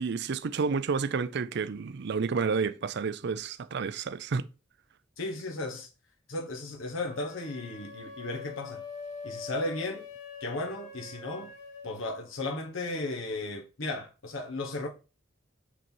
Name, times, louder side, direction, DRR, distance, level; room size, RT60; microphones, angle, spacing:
voice 1, 0.0-4.5, right 5 dB, 55° right, 0.5 m, -30 dB
voice 2, 5.2-5.9 6.3-8.8 9.2-10.0 10.4-11.5 11.8-14.9, left 2 dB, 75° left, 1.1 m, -35 dB
sound 1, 7.0-12.0, left 4 dB, 40° left, 2.1 m, -44 dB
6.2 x 4.0 x 4.5 m
head